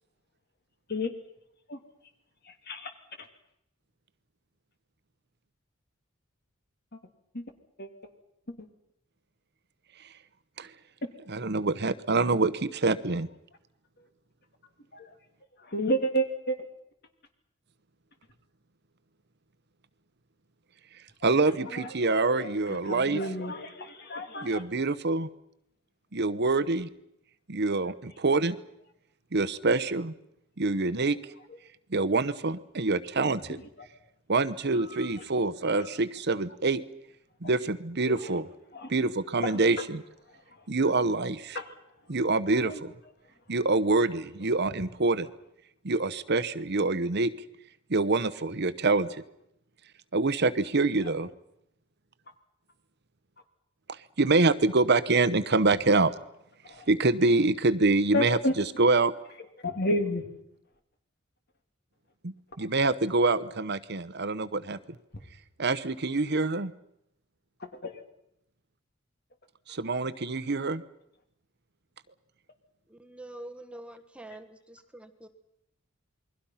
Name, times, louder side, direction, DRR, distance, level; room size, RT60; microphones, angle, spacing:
voice 1, 11.3-13.3 21.2-23.2 24.4-25.3 26.1-26.9 27.5-28.6 29.3-30.1 30.6-31.2 31.9-33.6 34.3-36.8 37.4-38.5 38.9-40.0 40.7-41.6 42.1-42.9 43.5-45.3 45.8-47.3 47.9-49.1 50.1-51.3 54.2-56.1 56.9-59.1 62.2-64.8 65.6-66.7 69.7-70.8, right 3 dB, 55° right, 14 dB, 1.0 m, -26 dB
voice 2, 15.7-16.6 21.7-24.6 27.7-27.9 35.7-35.9 38.1-38.2 38.7-38.9 39.5-39.6 41.5-41.6 42.6-42.8 56.7-56.9 58.1-58.6 59.6-60.3 67.6-68.0, equal, 50° left, 6 dB, 2.9 m, -31 dB
voice 3, 72.9-75.3, right 1 dB, 5° right, 8 dB, 1.3 m, -45 dB
28.5 x 22.0 x 5.8 m, 0.78 s
head